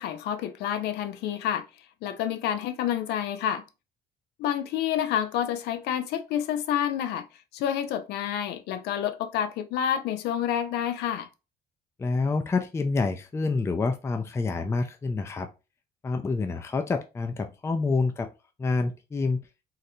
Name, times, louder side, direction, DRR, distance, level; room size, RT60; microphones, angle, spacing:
voice 1, 0.0-1.6 2.0-3.6 4.4-7.3 7.5-11.3, left 10 dB, 80° left, 0.4 m, -28 dB
voice 2, 12.0-15.5 16.0-18.3 18.6-19.4, left 3 dB, 15° left, 0.4 m, -27 dB
3.9 x 2.1 x 2.7 m
cardioid pair, 110°, 17 cm